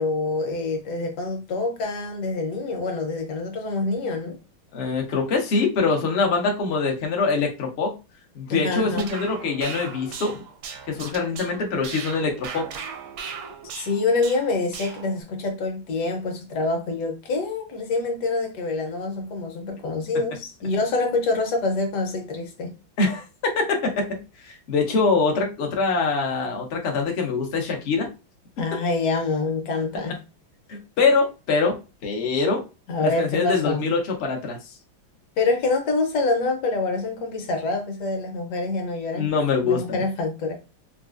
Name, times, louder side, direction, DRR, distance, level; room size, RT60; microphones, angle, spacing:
voice 1, 0.0-4.4 8.5-9.1 13.8-22.7 28.6-30.2 32.9-33.8 35.4-39.3 39.6-40.5, left 3 dB, 65° left, 1.2 m, -26 dB
voice 2, 4.7-7.9 8.3-10.4 10.9-12.7 23.0-23.2 23.5-24.2 24.4-28.1 30.7-31.8 32.0-32.6 33.0-34.6 39.1-40.0, left 4 dB, 80° left, 0.5 m, -24 dB
sound 1, 8.8-15.2, right 6 dB, 70° right, 1.0 m, -38 dB
4.0 x 2.3 x 2.4 m
omnidirectional pair, 2.2 m